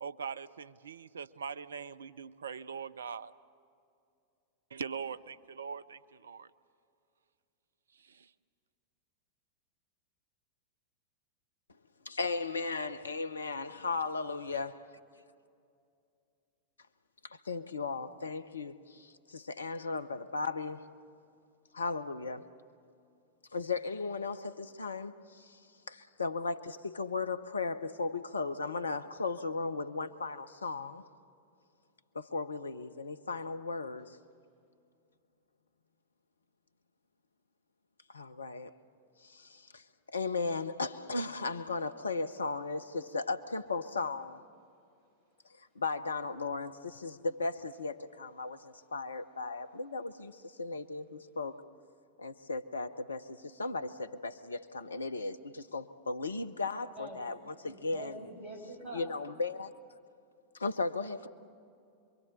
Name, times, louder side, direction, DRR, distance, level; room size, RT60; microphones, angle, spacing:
voice 1, 0.0-3.3 4.7-6.5 8.0-8.3, right 6 dB, 70° right, 0.6 m, -42 dB
voice 2, 12.0-14.8 17.2-20.9 21.7-22.6 23.5-31.1 32.1-34.2 38.1-38.8 39.2-44.4 45.4-51.6 52.2-58.2 58.9-60.0 60.5-61.3, left 3 dB, 75° left, 0.8 m, -36 dB
voice 3, 57.5-59.1, right 1 dB, 40° right, 6.3 m, -45 dB
27.0 x 23.5 x 6.7 m
figure-of-eight pair, 90°, 0 cm